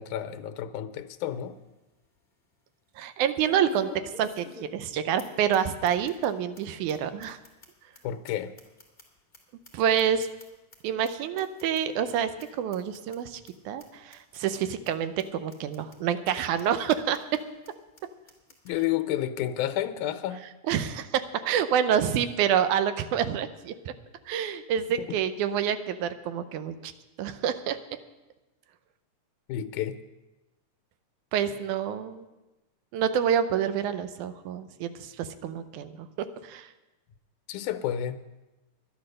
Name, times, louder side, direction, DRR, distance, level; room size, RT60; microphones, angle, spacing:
voice 1, 0.0-1.6 8.0-8.5 18.7-20.4 25.0-25.1 29.5-30.0 37.5-38.2, left 11 dB, 85° left, 9 dB, 2.2 m, -30 dB
sound 1, 1.1-1.2 1.6-1.7 3.4-4.9 5.2-5.3 5.5-5.6 5.8-6.3 6.5-6.6 6.9-7.0 7.2-9.4 9.6-10.8 11.0-11.1 11.4-11.8 12.1-12.2 12.4-12.5 12.7-13.2 13.5-13.6 13.8-13.9 14.1-14.6 14.8-14.9 15.2-15.3 15.5-16.0 16.3-16.4 16.6-16.7 16.9-17.4 17.6-17.7 18.0-18.1 18.3-18.7, left 2 dB, 15° left, 2.1 m, -48 dB
voice 2, 3.0-3.9 4.2-7.4 9.7-10.3 10.8-12.3 12.6-13.4 13.7-17.4 20.7-23.9 24.3-26.9 27.2-27.8 31.3-32.3 32.9-36.7, right 9 dB, 85° right, 11 dB, 2.2 m, -27 dB
12.0 x 10.5 x 6.5 m, 1.1 s
omnidirectional pair, 3.4 m